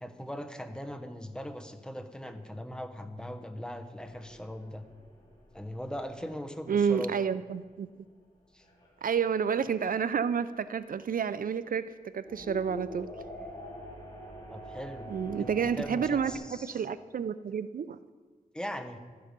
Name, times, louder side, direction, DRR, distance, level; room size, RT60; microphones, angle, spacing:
voice 1, 0.0-4.8 5.5-7.1 8.5-8.6 14.5-15.1 15.4-16.8 18.5-19.0, equal, 5° left, 6 dB, 0.9 m, -40 dB
sound 1, 4.0-7.7 8.1-8.2 8.6-10.2 10.8-10.9 12.3-16.3, equal, 30° left, 3.0 m, -46 dB
voice 2, 6.7-7.9 9.0-13.1 15.1-18.0, right 7 dB, 65° right, 14 dB, 0.4 m, -30 dB
12.5 x 9.5 x 5.2 m, 1.5 s
wide cardioid pair, 120°, 16 cm